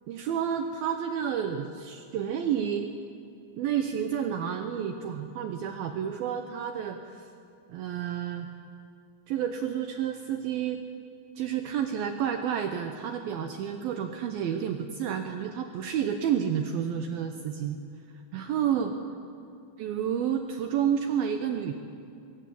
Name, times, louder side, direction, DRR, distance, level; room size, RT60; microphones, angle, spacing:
voice 1, 0.1-2.9 3.6-7.3 7.7-8.5 9.3-10.8 11.4-17.8 18.3-18.9 19.8-21.7, right 8 dB, 75° right, 6 dB, 2.2 m, -30 dB
22.0 x 17.0 x 8.5 m, 2.6 s
omnidirectional pair, 5.3 m